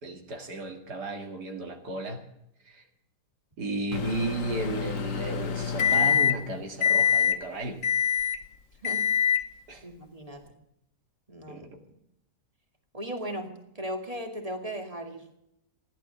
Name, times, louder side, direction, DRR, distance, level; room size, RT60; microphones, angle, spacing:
voice 1, 0.0-2.2 2.7-2.8 3.6-7.8 9.7-9.8 11.5-11.8, right 2 dB, 75° right, 3 dB, 2.5 m, -34 dB
Microwave oven, 3.9-6.5 6.8-7.4 7.8-8.4 8.8-9.5, left 8 dB, 55° left, 1.3 m, -25 dB
voice 2, 9.8-10.5 11.3-11.7 12.9-15.2, equal, 20° right, 4 dB, 2.5 m, -37 dB
15.0 x 11.5 x 7.8 m, 0.78 s
omnidirectional pair, 1.8 m